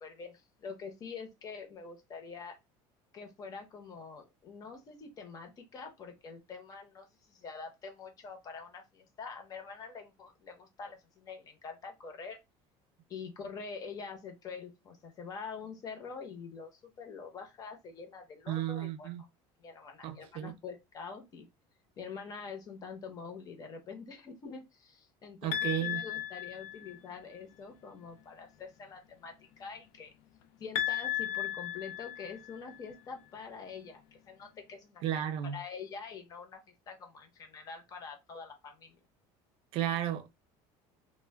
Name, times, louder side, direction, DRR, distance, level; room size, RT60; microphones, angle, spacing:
voice 1, 0.0-2.6 3.1-12.4 13.1-19.1 19.6-21.5 22.0-30.1 30.6-35.0 35.5-39.0, left 5 dB, 30° left, 0.7 m, -45 dB
voice 2, 18.5-19.2 20.0-20.5 25.4-26.0 35.0-35.6 39.7-40.3, right 11 dB, 50° right, 0.4 m, -33 dB
sound 1, 25.5-27.2 30.8-32.8, left 11 dB, 80° left, 0.4 m, -35 dB
2.1 x 2.1 x 3.3 m
cardioid pair, 160°, 12 cm